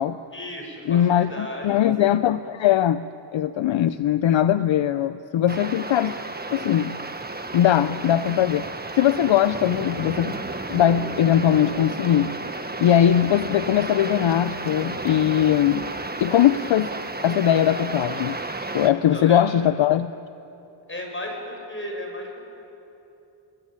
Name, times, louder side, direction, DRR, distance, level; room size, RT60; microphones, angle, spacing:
voice 1, 0.3-1.8 18.9-19.4 20.9-22.5, left 1 dB, 25° left, 2 dB, 7.0 m, -34 dB
voice 2, 0.9-3.0 3.3-6.2 6.5-7.0 7.5-8.7 9.0-10.4 10.7-12.4 12.8-15.9 16.2-16.9 17.2-18.4 18.7-20.1, left 10 dB, 70° left, 13 dB, 0.7 m, -20 dB
sound 1, 5.5-18.9, right 2 dB, 20° right, 1.5 m, -32 dB
29.0 x 21.0 x 8.9 m, 2.9 s
wide cardioid pair, 95°, 47 cm